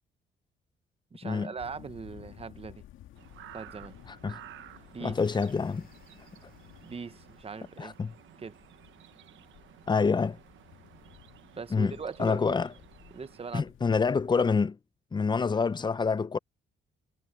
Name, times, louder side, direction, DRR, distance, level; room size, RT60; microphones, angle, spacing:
voice 1, 1.1-2.8 3.5-3.9 4.9-5.2 6.8-7.9 8.4-8.6 11.5-12.7 13.1-14.0, right 5 dB, 30° right, 1.1 m, -40 dB
sound 1, 1.6-14.6, left 13 dB, 85° left, 2.1 m, -55 dB
sound 2, 3.1-13.6, right 12 dB, 75° right, 1.2 m, -54 dB
sound 3, 5.0-8.1, left 7 dB, 50° left, 5.7 m, -66 dB
voice 2, 5.0-5.9 7.8-8.1 9.9-10.4 11.7-11.9 12.2-12.7 13.5-14.8 15.1-16.4, left 5 dB, 20° left, 0.5 m, -27 dB
cardioid pair, 90°, 20 cm